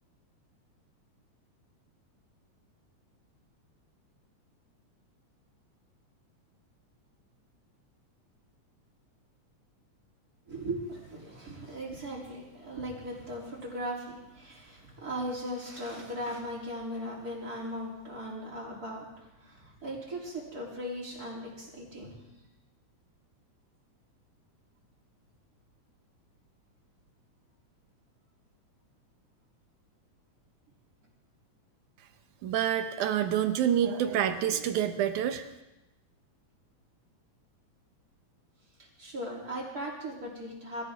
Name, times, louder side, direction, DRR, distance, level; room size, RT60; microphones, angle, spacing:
voice 1, 10.5-22.1 38.8-40.9, equal, 30° right, -3 dB, 3.4 m, -38 dB
voice 2, 32.4-35.5, right 10 dB, 85° right, 8 dB, 2.3 m, -27 dB
22.5 x 13.5 x 3.6 m, 0.99 s
omnidirectional pair, 3.5 m